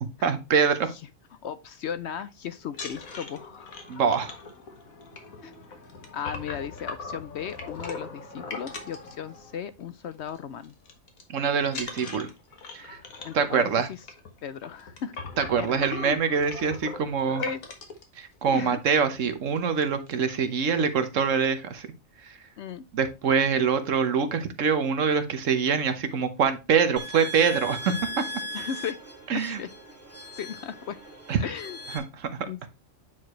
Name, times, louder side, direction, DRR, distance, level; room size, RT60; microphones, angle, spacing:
voice 1, 0.2-0.9 3.9-4.3 11.3-12.3 12.7-13.0 13.3-13.9 15.4-17.4 18.1-21.9 22.2-22.4 22.9-28.2 29.3-29.6 31.3-31.4 31.9-32.5, right 6 dB, 70° right, 1.3 m, -25 dB
voice 2, 1.4-3.7 5.4-5.5 6.1-10.7 13.2-13.7 14.4-15.1 15.6-16.2 17.4-17.6 18.5-18.8 22.6-22.8 28.5-29.0 29.3-29.7 30.4-31.0 31.4-31.8 32.5-32.7, left 8 dB, 65° left, 0.8 m, -36 dB
sound 1, 2.7-9.8 10.1-10.4 10.6-11.2 11.7-18.0 18.7-18.8 19.1-19.3 19.6-20.1, left 4 dB, 90° left, 1.9 m, -40 dB
sound 2, 27.0-32.0, equal, 10° right, 2.0 m, -38 dB
9.2 x 4.7 x 3.0 m
omnidirectional pair, 1.4 m